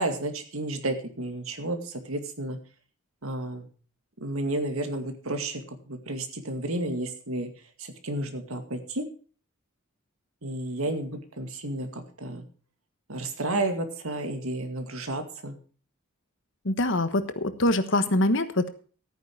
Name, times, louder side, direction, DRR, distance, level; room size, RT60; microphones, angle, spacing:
voice 1, 0.0-2.6 3.2-3.7 4.2-7.5 7.8-9.1 10.4-12.4 13.1-15.6, right 2 dB, 80° right, 6 dB, 2.2 m, -32 dB
voice 2, 16.6-18.7, left 1 dB, 60° left, 11 dB, 1.3 m, -24 dB
13.5 x 9.3 x 4.6 m, 0.41 s
head